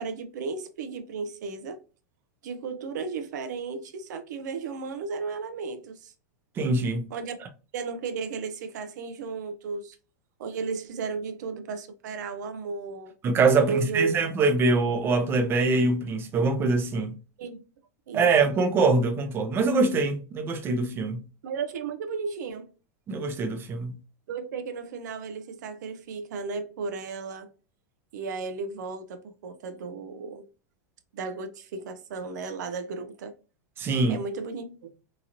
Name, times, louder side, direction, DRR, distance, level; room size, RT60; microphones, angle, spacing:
voice 1, 0.0-1.8 2.4-6.1 7.1-7.5 7.7-10.0 10.4-13.1 13.7-14.2 17.4-17.6 18.1-18.3 21.4-22.7 24.3-27.5 28.1-30.5 31.1-33.3 34.1-34.9, right 4 dB, 80° right, 0.5 m, -34 dB
voice 2, 6.6-7.1 13.2-17.1 18.1-21.2 23.1-23.9 33.8-34.2, right 3 dB, 25° right, 0.5 m, -24 dB
2.9 x 2.7 x 2.5 m
supercardioid pair, 140°, 9 cm